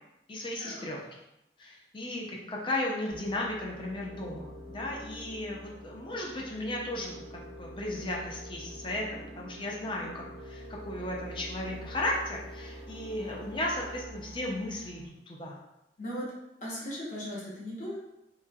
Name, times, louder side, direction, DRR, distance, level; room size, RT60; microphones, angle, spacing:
voice 1, 0.3-1.2 1.6-15.6, left 1 dB, 30° left, -2 dB, 0.5 m, -35 dB
sound 1, 3.1-15.1, equal, 20° right, 0.4 m, -46 dB
voice 2, 16.6-18.0, equal, 45° left, -6 dB, 1.0 m, -37 dB
3.1 x 2.9 x 2.3 m, 0.88 s
head